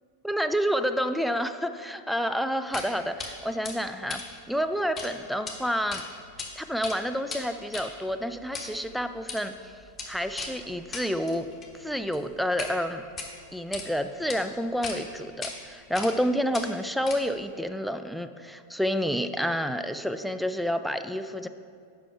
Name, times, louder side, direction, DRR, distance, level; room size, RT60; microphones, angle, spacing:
voice 1, 0.2-6.0 6.6-9.7 10.1-11.5 11.7-13.0 13.5-21.5, equal, ahead, 10 dB, 0.3 m, -29 dB
sound 1, 2.7-2.9 3.2-3.3 3.6-5.1 5.4-5.5 5.9-6.5 6.7-12.7 13.1-13.9 14.3-14.4 14.8-15.0 15.4-15.5 15.9-16.2 16.5-17.5, left 4 dB, 20° left, 1.1 m, -38 dB
7.6 x 5.5 x 4.8 m, 2.2 s
figure-of-eight pair, 90°, 0 cm